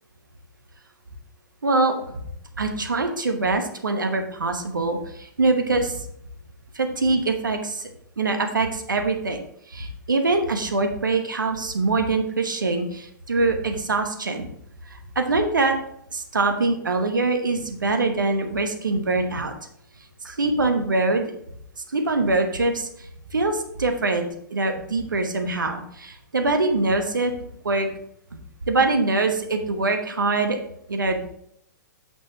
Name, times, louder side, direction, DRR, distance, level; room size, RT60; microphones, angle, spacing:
voice 1, 1.6-2.2 2.6-6.1 6.7-7.9 8.2-9.4 9.7-14.5 14.9-15.8 16.1-19.5 20.2-21.2 21.8-24.2 24.5-27.3 27.6-27.9 28.7-30.6 30.9-31.3, right 3 dB, 85° right, 5 dB, 1.1 m, -23 dB
8.7 x 6.1 x 3.0 m, 0.71 s
figure-of-eight pair, 110°, 10 cm